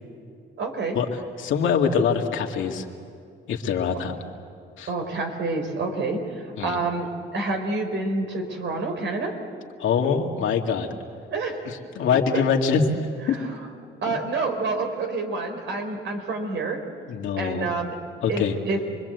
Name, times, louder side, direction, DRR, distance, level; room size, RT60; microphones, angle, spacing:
voice 1, 0.6-1.0 3.9-4.0 4.9-9.4 11.3-11.6 12.1-12.2 13.3-13.4 14.0-16.8 17.4-18.0 18.3-18.8, right 3 dB, 70° right, 4 dB, 4.0 m, -28 dB
voice 2, 1.4-2.8 3.5-4.1 4.8-4.9 6.6-6.8 9.8-10.9 11.7-12.8 13.3-13.4 14.1-14.2 17.1-17.7 18.2-18.5, left 7 dB, 75° left, 2 dB, 2.2 m, -24 dB
27.5 x 21.5 x 8.1 m, 2.4 s
cardioid pair, 90°, 20 cm